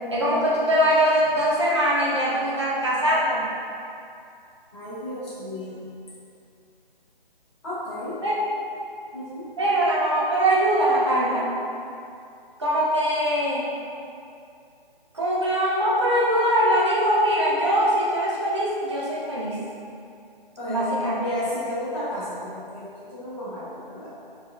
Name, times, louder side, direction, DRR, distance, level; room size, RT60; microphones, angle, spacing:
voice 1, 0.1-3.5 8.2-8.4 9.6-11.5 12.6-13.6 15.1-19.6 20.7-21.1, equal, 30° right, -7 dB, 0.4 m, -22 dB
voice 2, 4.7-5.8 7.6-8.2 9.1-9.5 20.6-24.1, left 1 dB, 30° left, -11 dB, 1.0 m, -32 dB
4.5 x 2.3 x 2.3 m, 2.6 s
hypercardioid pair, 170°, 29 cm